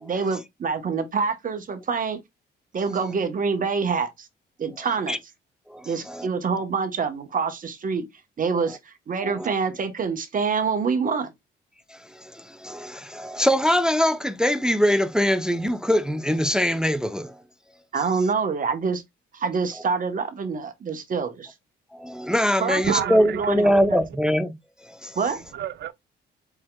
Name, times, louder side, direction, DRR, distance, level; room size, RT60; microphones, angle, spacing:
voice 1, 0.0-2.2 2.7-4.3 4.6-5.2 5.8-8.1 8.4-11.3 17.9-19.0 19.3-21.5 22.6-24.0 25.1-25.4, right 5 dB, 45° right, 1.1 m, -26 dB
voice 2, 5.7-6.3 9.2-9.5 12.2-17.3 22.0-24.5 25.0-25.1, equal, 5° right, 0.5 m, -23 dB
voice 3, 22.8-24.0 25.3-25.9, right 10 dB, 60° right, 0.6 m, -31 dB
4.6 x 4.1 x 2.3 m
cardioid pair, 90°, 20 cm